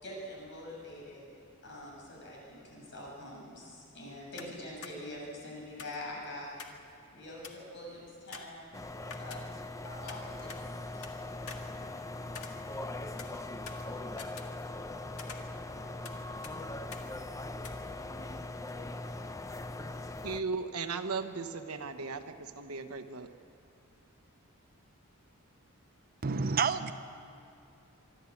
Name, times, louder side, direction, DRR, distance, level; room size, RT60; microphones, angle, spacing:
voice 1, 0.0-1.3 1.6-6.5 7.1-8.7 9.2-9.5 9.8-10.5 10.9-11.1, left 1 dB, 55° left, -3 dB, 7.1 m, -44 dB
sound 1, 4.4-4.6 4.8-4.9 5.8-6.9 7.1-7.2 7.4-7.7 8.3-9.8 10.1-11.1 11.5-12.9 13.2-14.9 15.2-16.2 16.4-16.5 16.9-17.1 17.6-17.7, left 5 dB, 80° left, 1.7 m, -47 dB
sound 2, 8.7-20.4, left 2 dB, 15° left, 0.6 m, -41 dB
voice 2, 20.2-23.3, right 4 dB, 85° right, 8 dB, 1.2 m, -37 dB
voice 3, 26.2-26.9, right 5 dB, 45° right, 11 dB, 0.7 m, -29 dB
25.0 x 12.0 x 8.6 m, 2.6 s
head